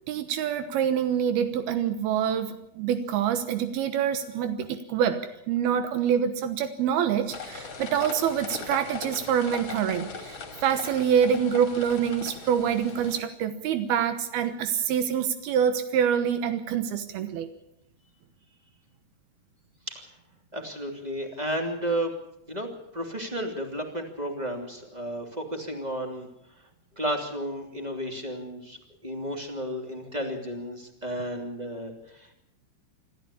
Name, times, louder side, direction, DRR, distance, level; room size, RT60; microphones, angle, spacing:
voice 1, 0.1-17.5, right 8 dB, 85° right, 9 dB, 3.1 m, -26 dB
sound 1, 7.3-13.2, left 5 dB, 40° left, 2.6 m, -39 dB
voice 2, 20.5-22.1 22.5-26.3 27.0-32.3, right 1 dB, 10° right, 3 dB, 2.5 m, -33 dB
26.5 x 13.5 x 8.6 m, 0.79 s
omnidirectional pair, 4.4 m